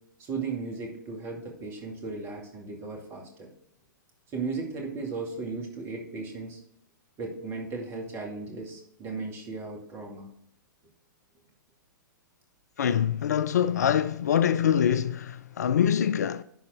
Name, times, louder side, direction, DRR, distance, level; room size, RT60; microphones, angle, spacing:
voice 1, 0.2-3.5 4.3-6.6 7.2-10.3, right 4 dB, 25° right, 2.1 m, -36 dB
voice 2, 12.8-16.4, left 9 dB, 55° left, 0.4 m, -24 dB
11.0 x 4.2 x 3.4 m
figure-of-eight pair, 110°, 11 cm